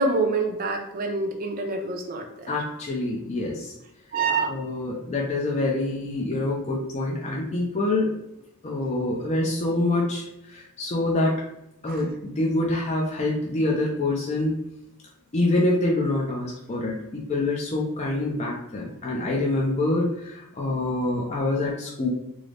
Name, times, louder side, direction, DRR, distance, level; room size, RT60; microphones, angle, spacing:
voice 1, 0.0-2.5 4.1-4.5 11.9-12.0, right 3 dB, 40° right, 2 dB, 0.5 m, -26 dB
voice 2, 2.5-3.7 4.5-8.1 8.6-11.4 11.8-14.5 15.3-22.1, left 2 dB, 30° left, -3 dB, 0.5 m, -26 dB
3.8 x 2.0 x 3.2 m, 0.84 s
head